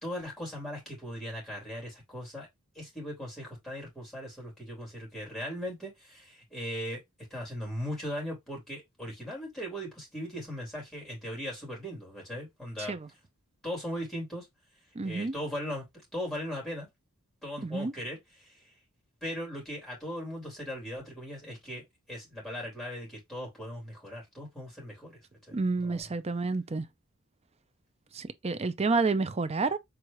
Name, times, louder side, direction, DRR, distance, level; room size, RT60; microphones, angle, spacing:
voice 1, 0.0-2.5 2.7-7.0 7.3-12.9 13.6-14.5 15.0-15.8 16.1-16.9 17.4-18.7 19.2-21.8 22.1-25.2 25.5-26.0, equal, 5° left, 3.0 m, -38 dB
voice 2, 14.9-15.3 17.6-17.9 25.5-26.9 28.1-29.8, right 3 dB, 30° right, 0.5 m, -29 dB
4.8 x 3.7 x 3.0 m
head